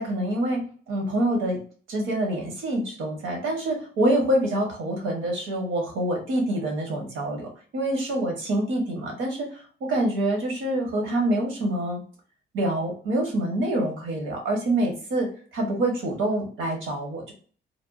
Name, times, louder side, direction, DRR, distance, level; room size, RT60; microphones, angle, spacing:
voice 1, 0.0-1.6 1.9-12.0 12.5-17.3, right 1 dB, 80° right, 1 dB, 1.1 m, -26 dB
3.4 x 2.2 x 2.4 m, 0.43 s
cardioid pair, 90°, 20 cm